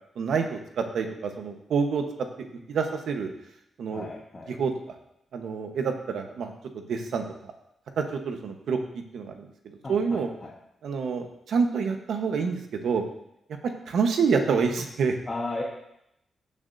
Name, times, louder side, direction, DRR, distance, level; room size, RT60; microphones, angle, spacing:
voice 1, 0.2-2.0 2.4-3.3 3.8-4.1 4.5-4.7 5.3-7.5 8.0-9.4 9.9-10.3 10.8-13.0 13.9-15.2, right 5 dB, 75° right, 4 dB, 1.2 m, -27 dB
voice 2, 3.9-4.5 9.8-10.5 15.3-15.6, left 2 dB, 25° left, -3 dB, 1.3 m, -35 dB
15.5 x 7.2 x 2.7 m, 0.80 s
wide cardioid pair, 155°, 0 cm